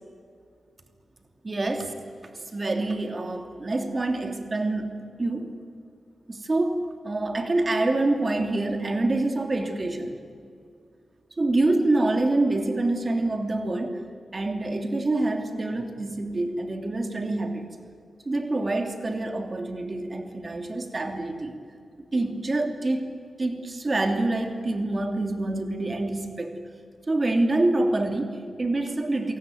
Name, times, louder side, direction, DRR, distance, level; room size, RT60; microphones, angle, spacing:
voice 1, 1.4-1.8 2.3-5.5 6.3-10.2 11.4-14.0 14.3-17.7 18.2-21.7 22.1-23.1 23.4-26.5 27.1-29.4, right 2 dB, 40° right, 5 dB, 3.0 m, -26 dB
27.5 x 18.0 x 9.4 m, 2.3 s
cardioid pair, 55°, 0 cm